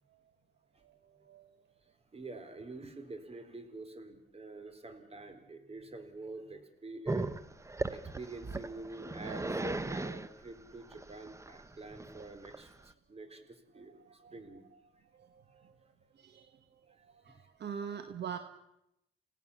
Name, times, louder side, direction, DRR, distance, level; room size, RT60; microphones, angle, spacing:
voice 1, 2.1-7.3 7.9-14.6, right 2 dB, 30° right, 9 dB, 4.2 m, -47 dB
Growling, 7.1-12.9, right 2 dB, 15° right, 1.1 m, -38 dB
voice 2, 16.2-16.5 17.2-18.4, right 7 dB, 60° right, 9 dB, 1.6 m, -42 dB
29.0 x 18.0 x 7.2 m, 0.85 s
cardioid pair, 90°, 20 cm